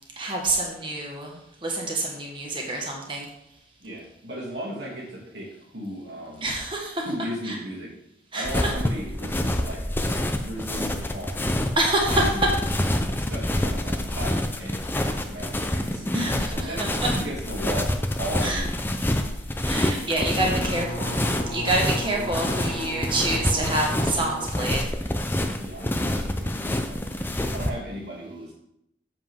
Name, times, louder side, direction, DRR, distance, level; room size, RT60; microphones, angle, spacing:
voice 1, 0.2-3.3 6.4-7.1 7.5-7.6 8.3-8.7 11.8-12.5 16.1-16.3 18.4-18.6 19.6-21.2 21.5-24.8, right 2 dB, 25° right, 0 dB, 1.5 m, -27 dB
voice 2, 3.8-6.4 7.0-7.9 8.3-11.4 12.1-12.5 13.2-18.7 20.0-20.9 25.6-27.1 27.5-28.5, equal, 65° right, -3 dB, 2.6 m, -36 dB
sound 1, 8.4-27.7, left 1 dB, 10° left, 0.5 m, -27 dB
sound 2, 20.4-24.5, equal, 55° left, 1.2 m, -34 dB
7.5 x 7.3 x 3.6 m, 0.80 s
head